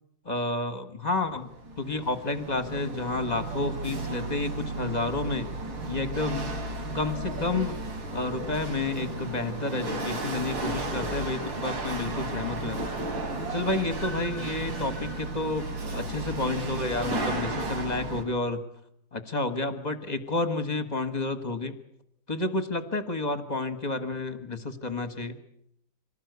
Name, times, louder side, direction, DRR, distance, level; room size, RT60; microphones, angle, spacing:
voice 1, 0.2-1.5 1.8-5.5 5.8-6.6 6.9-7.7 8.1-12.8 13.5-18.6 19.1-21.7 22.3-25.4, left 2 dB, 25° left, 10 dB, 1.5 m, -30 dB
Chatter / Hiss / Rattle, 1.3-18.2, right 2 dB, 90° right, 3.7 m, -34 dB
25.5 x 18.5 x 8.2 m, 0.75 s
omnidirectional pair, 2.0 m